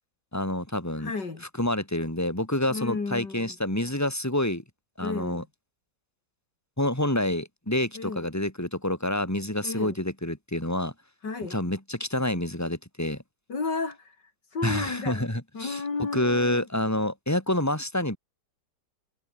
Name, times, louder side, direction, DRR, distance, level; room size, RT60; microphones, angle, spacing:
voice 1, 0.3-1.1 1.6-4.6 5.0-5.4 6.8-10.9 11.5-13.2 14.6-15.8 16.1-18.2, left 1 dB, 10° left, 5.0 m, -28 dB
voice 2, 1.0-1.5 2.7-3.6 5.0-5.5 7.9-8.3 9.6-9.9 11.2-11.6 13.5-14.2 14.5-15.3 15.5-16.7, left 4 dB, 75° left, 4.1 m, -32 dB
omnidirectional pair, 1.9 m